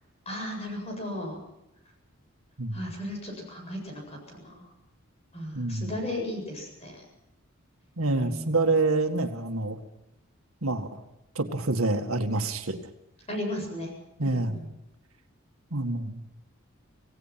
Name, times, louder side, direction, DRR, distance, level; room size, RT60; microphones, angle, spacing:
voice 1, 0.3-1.4 2.7-4.7 5.3-7.0 8.2-8.6 13.3-13.9 14.2-14.6, left 1 dB, 30° left, 2 dB, 7.9 m, -35 dB
voice 2, 2.6-2.9 5.5-6.0 8.0-9.8 10.6-11.0 11.4-12.8 14.2-14.6 15.7-16.3, right 2 dB, 85° right, 6 dB, 2.0 m, -27 dB
27.0 x 17.5 x 5.9 m, 0.85 s
head